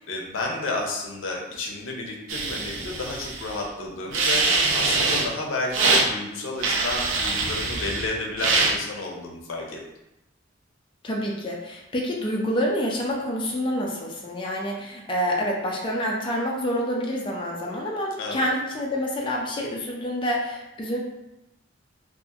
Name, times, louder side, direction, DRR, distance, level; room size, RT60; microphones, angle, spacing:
voice 1, 0.1-9.8 18.2-18.5, left 2 dB, 85° left, 0 dB, 0.5 m, -31 dB
sound 1, 2.3-3.6 4.1-5.3 5.7-6.1 6.6-8.1 8.4-8.7, right 3 dB, 75° right, 0.4 m, -23 dB
voice 2, 11.0-21.0, equal, 25° left, -2 dB, 0.4 m, -27 dB
2.8 x 2.4 x 2.3 m, 0.91 s
head